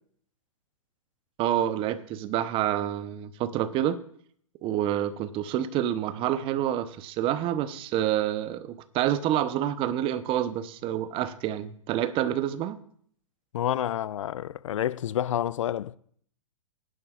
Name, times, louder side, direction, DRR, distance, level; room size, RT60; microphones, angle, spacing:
voice 1, 1.4-4.0 4.6-12.8, right 11 dB, 30° right, 0.8 m, -28 dB
voice 2, 13.5-16.0, left 11 dB, 70° left, 0.4 m, -29 dB
21.0 x 11.0 x 2.4 m
hypercardioid pair, 120°, 17 cm